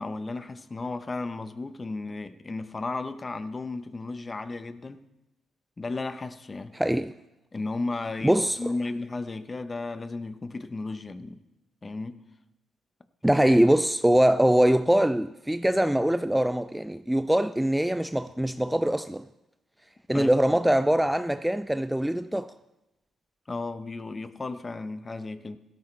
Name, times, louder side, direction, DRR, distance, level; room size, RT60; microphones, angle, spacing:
voice 1, 0.0-5.0 5.8-6.8 7.5-11.4 11.8-12.2 20.1-20.3 23.5-25.6, left 3 dB, 25° left, 0.8 m, -34 dB
voice 2, 6.7-7.1 8.2-8.6 13.2-19.2 20.1-22.5, right 1 dB, 5° right, 0.3 m, -23 dB
16.5 x 13.5 x 3.3 m
cardioid pair, 90°, 0 cm